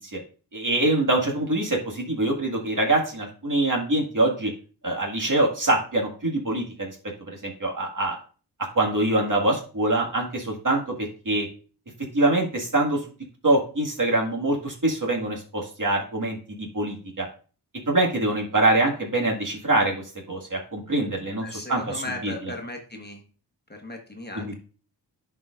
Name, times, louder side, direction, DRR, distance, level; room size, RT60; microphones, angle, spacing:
voice 1, 0.5-4.5 4.8-6.9 7.3-8.2 8.8-11.5 12.1-13.0 13.4-17.3 17.9-21.4 21.7-21.8 22.2-22.3 24.4-24.6, right 2 dB, 45° right, -1 dB, 1.8 m, -24 dB
voice 2, 21.4-23.2 23.7-24.5, left 2 dB, 20° left, 1 dB, 1.3 m, -36 dB
10.5 x 4.8 x 2.5 m, 0.38 s
cardioid pair, 50°, 45 cm